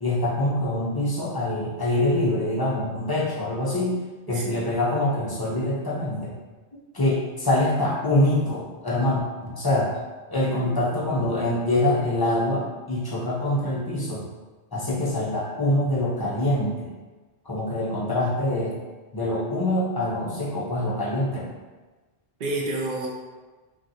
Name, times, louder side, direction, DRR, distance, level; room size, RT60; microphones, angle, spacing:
voice 1, 0.0-4.0 4.3-6.3 6.9-9.9 10.3-14.2 14.7-16.9 17.5-18.7 19.1-21.5, left 1 dB, 30° left, -6 dB, 0.5 m, -25 dB
voice 2, 4.3-4.6 10.4-10.7 22.4-23.1, right 2 dB, 55° right, -2 dB, 0.7 m, -29 dB
2.4 x 2.4 x 4.0 m, 1.3 s
omnidirectional pair, 1.1 m